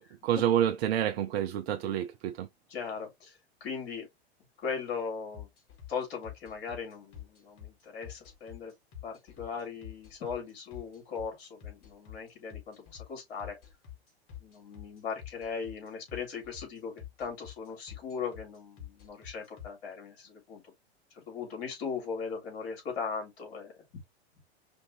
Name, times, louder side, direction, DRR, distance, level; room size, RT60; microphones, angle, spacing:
voice 1, 0.0-2.5, right 10 dB, 65° right, 0.7 m, -28 dB
voice 2, 2.7-4.1 4.6-5.5 5.9-8.7 9.0-13.6 14.4-16.9 17.2-20.6 21.1-23.8, left 6 dB, 65° left, 3.2 m, -38 dB
sound 1, 5.3-19.7, left 10 dB, 40° left, 2.1 m, -46 dB
5.1 x 2.5 x 3.3 m
hypercardioid pair, 100°, 32 cm